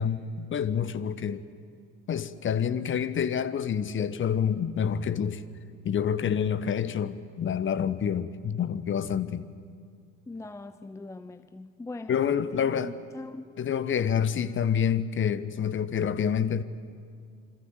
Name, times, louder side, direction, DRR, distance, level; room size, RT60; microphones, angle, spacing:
voice 1, 0.0-1.5 2.1-5.4 5.8-9.5 12.1-12.9 13.6-16.6, left 8 dB, 30° left, 1.2 m, -27 dB
voice 2, 10.3-12.1 12.5-13.5, left 2 dB, 5° left, 0.7 m, -41 dB
27.0 x 25.5 x 8.0 m
figure-of-eight pair, 65°, 41 cm